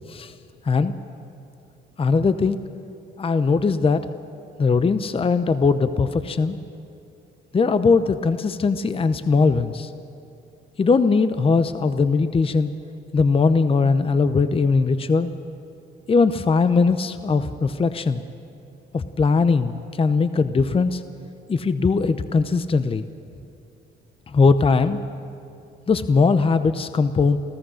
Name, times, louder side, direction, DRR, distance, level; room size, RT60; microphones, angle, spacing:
voice 1, 2.0-2.6 3.2-4.1 4.6-6.6 7.5-9.9 10.8-12.7 13.1-15.3 16.1-18.2 18.9-21.0 21.5-23.1 24.3-25.0 25.9-27.4, left 4 dB, 30° left, 11 dB, 0.7 m, -20 dB
28.5 x 14.5 x 6.4 m, 2.6 s
cardioid pair, 90°, 20 cm